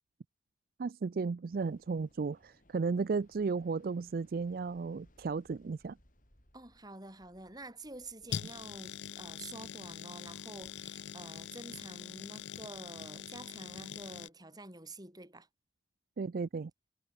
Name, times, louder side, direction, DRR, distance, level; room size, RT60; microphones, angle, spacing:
voice 1, 0.8-6.0 16.2-16.7, right 4 dB, 55° right, 0.4 m, -34 dB
Waves surf, 1.5-11.7, left 1 dB, 50° left, 7.8 m, -68 dB
voice 2, 6.5-15.5, right 2 dB, 20° right, 5.6 m, -49 dB
sound 1, 8.3-14.3, left 9 dB, 75° left, 0.5 m, -43 dB
head